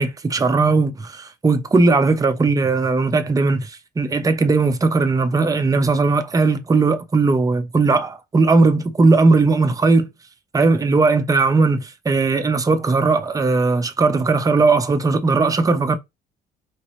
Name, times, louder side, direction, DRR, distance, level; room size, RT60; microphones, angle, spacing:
voice 1, 0.0-10.1 10.5-16.0, right 3 dB, 20° right, 0.7 m, -18 dB
5.1 x 2.9 x 3.1 m
cardioid pair, 110°, 17 cm